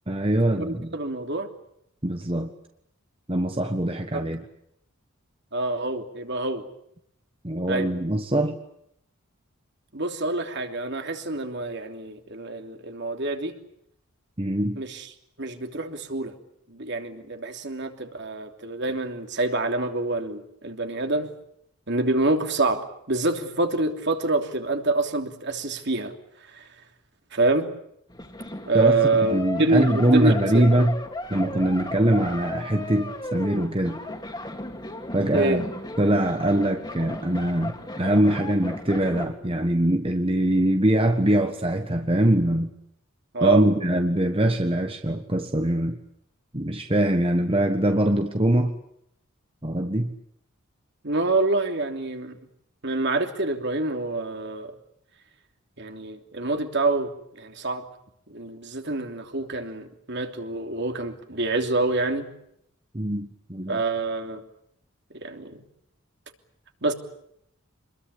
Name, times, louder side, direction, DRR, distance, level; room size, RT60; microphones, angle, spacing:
voice 1, 0.1-0.9 2.0-2.5 3.3-4.4 7.4-8.6 14.4-14.8 28.7-29.0 29.3-31.0 31.3-34.0 35.1-35.7 36.0-42.7 43.4-46.0 46.5-48.8 49.6-50.1 62.9-63.8, right 1 dB, 25° right, 5 dB, 1.4 m, -23 dB
voice 2, 0.6-1.5 4.1-4.2 5.5-6.6 7.7-7.9 9.9-13.6 14.8-15.1 15.4-16.3 16.7-21.3 21.9-26.1 26.5-26.6 27.3-27.7 28.6-30.6 35.3-35.6 43.3-43.7 51.0-52.4 52.8-54.7 55.8-57.8 58.3-62.3 63.7-64.4 65.1-65.6 66.8-66.9, right 2 dB, 55° right, 5 dB, 3.1 m, -26 dB
sound 1, 28.1-39.3, left 2 dB, 20° left, 2.9 m, -36 dB
27.0 x 22.0 x 8.5 m, 0.74 s
head